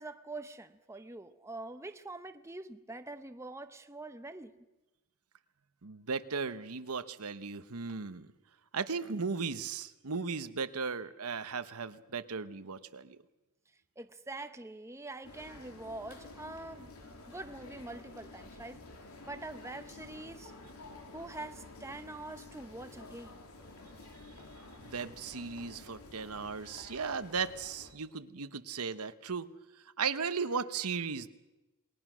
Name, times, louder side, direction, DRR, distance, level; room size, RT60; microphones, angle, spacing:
voice 1, 0.0-4.6 14.0-16.9 17.3-18.8 19.3-20.5 21.1-23.4, right 2 dB, 15° right, 0.8 m, -44 dB
voice 2, 5.8-8.3 8.7-13.2 24.8-29.5 30.0-31.3, right 5 dB, 85° right, 1.0 m, -36 dB
sound 1, 15.2-27.9, left 2 dB, 80° left, 3.1 m, -51 dB
28.0 x 21.0 x 6.2 m
head